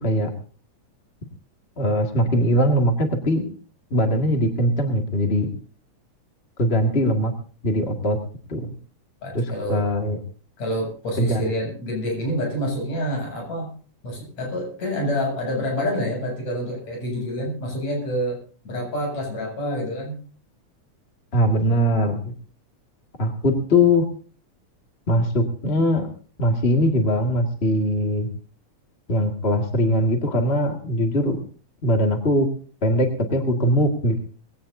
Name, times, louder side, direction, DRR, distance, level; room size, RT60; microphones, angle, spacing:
voice 1, 0.0-0.3 1.8-3.5 3.9-5.5 6.6-7.3 7.6-8.2 8.5-8.7 9.3-10.2 11.2-11.5 21.3-22.3 23.2-24.1 25.1-26.1 26.4-28.3 29.1-31.4 31.8-32.5 32.8-34.2, equal, 25° left, 3 dB, 1.7 m, -21 dB
voice 2, 9.2-9.9 10.6-13.7 14.0-20.2, equal, 60° left, 0 dB, 8.8 m, -27 dB
22.0 x 17.0 x 2.7 m, 0.40 s
omnidirectional pair, 3.6 m